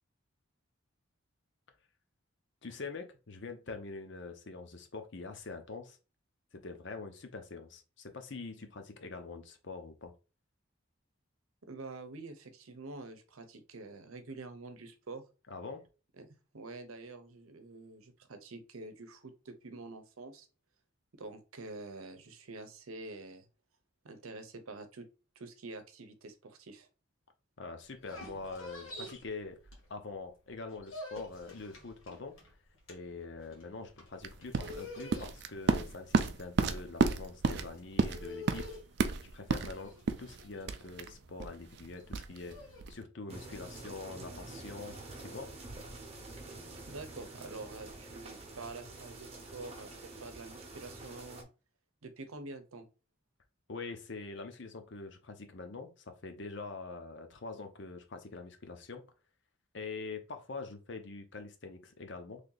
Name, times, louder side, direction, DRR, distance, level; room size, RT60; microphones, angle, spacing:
voice 1, 2.6-6.0 6.5-10.1 15.5-15.8 27.6-29.6 29.9-32.3 32.9-38.7 39.2-39.9 40.2-45.5 53.7-59.0 59.7-62.4, left 3 dB, 55° left, 6 dB, 0.7 m, -44 dB
voice 2, 11.7-15.2 16.2-16.3 16.5-20.5 21.2-23.5 24.0-25.1 25.4-26.9 46.9-51.5 52.0-52.9, right 3 dB, 85° right, 8 dB, 0.8 m, -47 dB
sound 1, 27.9-30.2 30.5-42.8, left 2 dB, 75° left, 1.6 m, -49 dB
sound 2, 34.2-43.0, right 4 dB, 50° right, 0.4 m, -33 dB
sound 3, 43.3-51.4, right 2 dB, 30° right, 0.8 m, -47 dB
3.3 x 2.8 x 3.9 m, 0.32 s
head